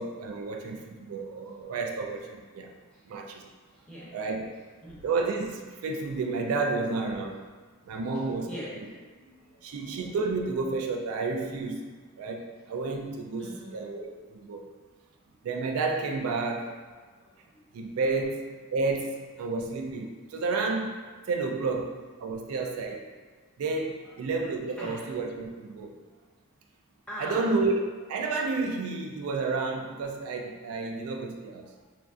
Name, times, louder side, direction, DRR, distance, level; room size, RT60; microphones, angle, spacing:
voice 1, 0.0-2.7 3.1-3.4 4.1-4.5 5.0-7.4 7.9-8.5 9.6-11.9 12.2-14.6 15.4-16.8 17.7-20.9 21.3-23.1 23.6-25.9 27.2-27.8 28.1-31.7, right 3 dB, 80° right, 2 dB, 0.3 m, -31 dB
voice 2, 3.8-4.2 4.8-5.0 7.9-9.9 13.4-13.7 17.2-17.6 24.0-24.2 24.8-25.1 27.1-27.5 31.6-31.8, equal, 5° left, -8 dB, 0.6 m, -42 dB
3.1 x 2.5 x 2.4 m, 1.4 s
head